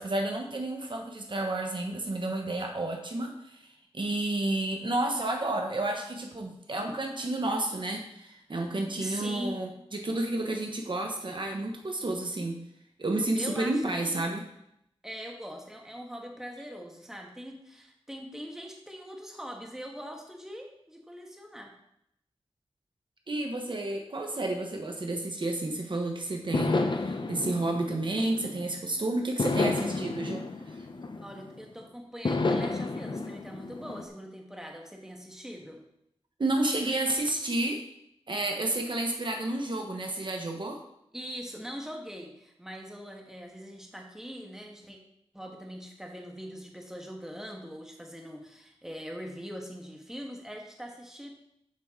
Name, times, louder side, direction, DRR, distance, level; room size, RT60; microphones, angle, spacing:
voice 1, 0.0-3.7 3.9-12.6 13.0-14.4 23.3-30.8 36.4-37.8 38.3-40.8, right 2 dB, 50° right, 3 dB, 1.0 m, -31 dB
voice 2, 9.0-9.6 13.3-14.2 15.0-21.7 31.2-35.8 41.1-45.0 45.3-51.3, equal, 5° right, 1 dB, 1.4 m, -42 dB
sound 1, 26.5-28.8 29.4-31.7 32.2-34.1, left 3 dB, 50° left, 0.6 m, -31 dB
7.5 x 5.9 x 3.7 m, 0.76 s
wide cardioid pair, 70°, 10 cm